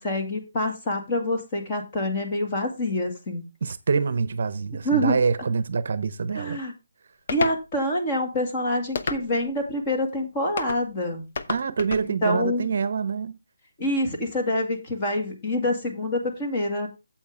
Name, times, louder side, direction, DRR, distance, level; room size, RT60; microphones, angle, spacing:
voice 1, 0.0-3.4 4.8-5.2 6.3-6.7 7.3-11.2 12.2-12.7 13.8-16.9, left 1 dB, 25° left, 2.2 m, -26 dB
voice 2, 3.6-6.6 11.5-13.4, right 5 dB, 50° right, 0.7 m, -26 dB
sound 1, 7.3-7.6 8.9-9.5 10.6-10.8 11.3-12.1, left 4 dB, 50° left, 0.9 m, -30 dB
8.9 x 7.6 x 3.6 m
hypercardioid pair, 170°, 0 cm